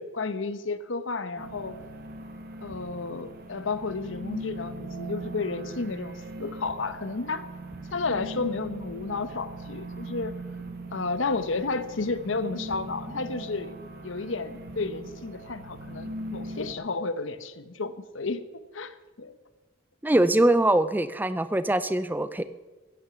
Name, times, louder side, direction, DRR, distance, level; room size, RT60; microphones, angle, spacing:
voice 1, 0.0-1.8 2.6-7.5 7.9-10.3 10.9-13.7 14.0-18.4 18.7-19.3, left 3 dB, 80° left, 13 dB, 1.0 m, -32 dB
sound 1, 1.4-16.7, right 1 dB, 50° right, 1.7 m, -40 dB
voice 2, 20.0-22.4, right 1 dB, 10° right, 13 dB, 0.5 m, -23 dB
15.5 x 9.1 x 7.0 m, 1.2 s
head